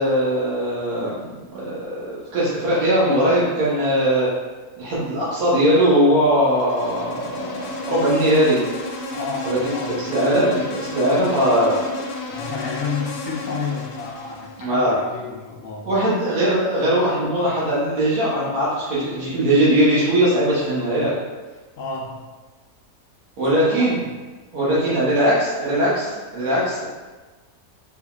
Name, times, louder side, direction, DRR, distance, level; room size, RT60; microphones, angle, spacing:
voice 1, 0.0-4.3 4.8-8.6 9.4-11.8 14.6-14.9 15.8-21.1 23.4-24.0 24.5-26.8, right 1 dB, 75° right, -9 dB, 1.4 m, -20 dB
Insect, 6.4-14.7, left 3 dB, 90° left, 1.1 m, -32 dB
voice 2, 9.1-10.0 12.3-15.9 21.8-22.3 23.7-24.0 24.6-24.9, left 4 dB, 70° left, -2 dB, 0.8 m, -31 dB
3.5 x 3.3 x 2.3 m, 1.3 s
omnidirectional pair, 1.6 m